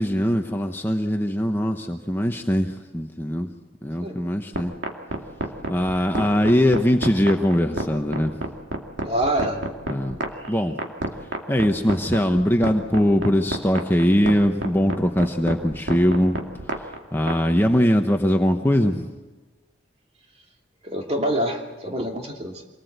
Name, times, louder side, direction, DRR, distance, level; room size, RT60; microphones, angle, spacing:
voice 1, 0.0-3.5 3.8-4.7 5.7-8.4 9.9-10.2 10.5-10.8 11.5-16.4 17.1-19.1, equal, 10° left, 4 dB, 1.0 m, -21 dB
sound 1, 4.5-17.4, right 2 dB, 70° right, 2.4 m, -28 dB
voice 2, 9.0-9.7 10.3-10.6 20.8-22.6, right 1 dB, 35° right, 1 dB, 2.7 m, -26 dB
25.5 x 19.0 x 8.1 m, 1.3 s
head